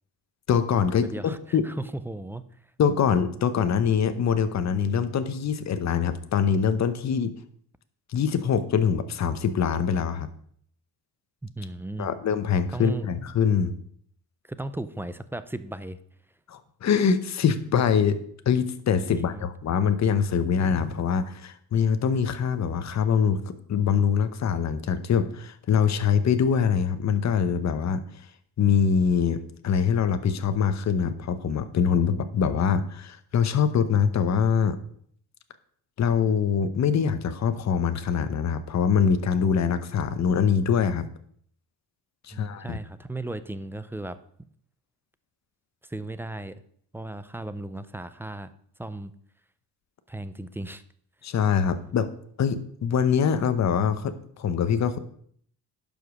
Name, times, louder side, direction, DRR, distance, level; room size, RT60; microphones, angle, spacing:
voice 1, 0.5-1.1 1.5-1.7 2.8-7.3 8.1-10.3 12.0-13.7 16.5-18.2 18.5-28.0 28.6-34.8 36.0-41.0 42.3-42.8 51.2-52.1 52.4-55.0, left 7 dB, 40° left, 11 dB, 0.9 m, -24 dB
voice 2, 1.0-2.4 11.4-12.1 12.7-13.1 14.5-16.0 19.2-19.5 42.3-44.2 45.8-46.6 46.9-48.5 48.8-49.1 50.1-50.8, right 2 dB, 5° right, 13 dB, 0.3 m, -36 dB
11.0 x 5.3 x 6.2 m, 0.63 s
cardioid pair, 145°, 41 cm